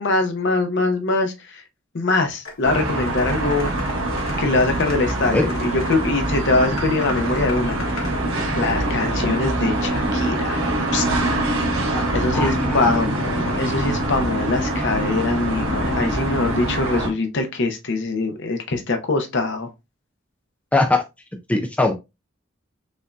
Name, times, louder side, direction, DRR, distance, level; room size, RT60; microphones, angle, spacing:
voice 1, 0.0-1.6 1.9-3.7 4.4-7.7 8.6-10.6 10.9-11.1 12.1-19.7, left 3 dB, 60° left, 0.7 m, -23 dB
sound 1, 2.5-2.6 3.0-6.0 6.8-8.2, left 4 dB, 80° left, 1.2 m, -37 dB
sound 2, 2.6-17.1, right 1 dB, 85° right, 1.2 m, -24 dB
voice 2, 12.3-13.0 20.7-21.0 21.5-21.9, left 2 dB, 5° left, 0.3 m, -21 dB
5.1 x 2.6 x 2.2 m
head